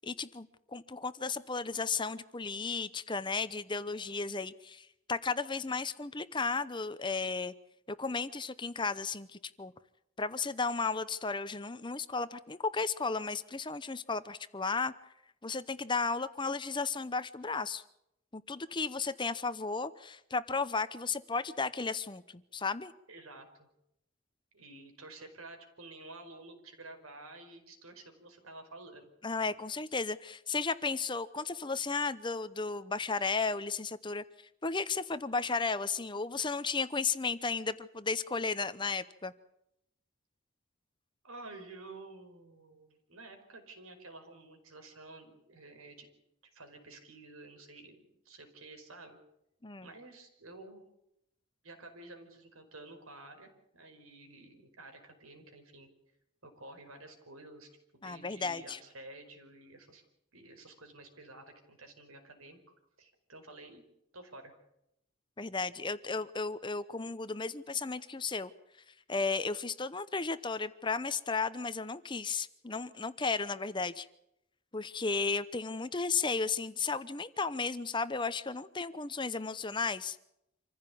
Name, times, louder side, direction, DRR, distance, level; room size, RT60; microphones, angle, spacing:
voice 1, 0.0-7.5 7.9-9.7 10.2-14.9 15.4-17.8 18.3-22.9 29.2-39.3 49.6-49.9 58.0-58.8 65.4-68.5 69.1-74.1 74.7-80.2, left 4 dB, 20° left, 14 dB, 0.8 m, -34 dB
voice 2, 23.1-23.7 24.5-29.1 41.2-46.1 46.5-49.2 49.8-50.8 51.6-55.9 56.4-60.0 60.3-62.6 63.0-63.8 64.1-64.5, right 2 dB, 85° right, 5 dB, 5.1 m, -51 dB
26.5 x 15.5 x 8.6 m, 0.80 s
head